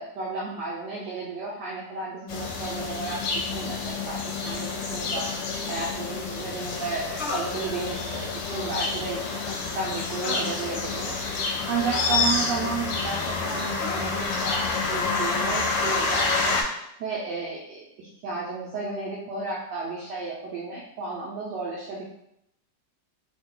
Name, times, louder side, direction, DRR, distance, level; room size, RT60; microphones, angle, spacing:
voice 1, 0.0-5.3 5.7-11.2 11.7-16.6 17.0-22.0, right 4 dB, 75° right, -5 dB, 1.2 m, -33 dB
sound 1, 2.3-16.6, left 4 dB, 80° left, 1.3 m, -28 dB
sound 2, 5.3-5.4 7.2-7.5 8.5-8.8 10.2-10.5 11.8-12.6 13.8-14.0, left 2 dB, 50° left, 0.6 m, -35 dB
3.2 x 2.2 x 3.5 m, 0.78 s
omnidirectional pair, 2.0 m